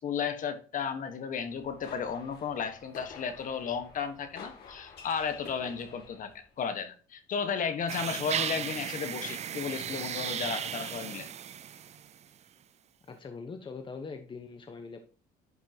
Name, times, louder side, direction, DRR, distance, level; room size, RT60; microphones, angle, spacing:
voice 1, 0.0-6.3 6.6-11.3, left 6 dB, 50° left, 1.4 m, -34 dB
sound 1, 1.4-6.5, left 5 dB, 70° left, 2.3 m, -49 dB
sound 2, 7.9-12.2, right 9 dB, 40° right, 0.5 m, -35 dB
voice 2, 13.0-15.0, left 4 dB, 30° left, 1.1 m, -42 dB
11.0 x 5.7 x 2.9 m
cardioid pair, 110°, 17 cm